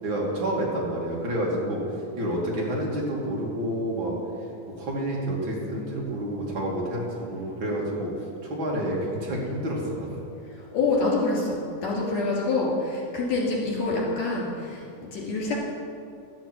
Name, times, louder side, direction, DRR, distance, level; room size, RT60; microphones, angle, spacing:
voice 1, 0.0-1.8 2.1-4.1 4.8-8.1 8.4-10.2, right 1 dB, 40° right, -3 dB, 2.7 m, -29 dB
voice 2, 10.5-15.6, left 3 dB, 55° left, -4 dB, 4.2 m, -26 dB
12.0 x 7.3 x 7.6 m, 2.5 s
omnidirectional pair, 3.8 m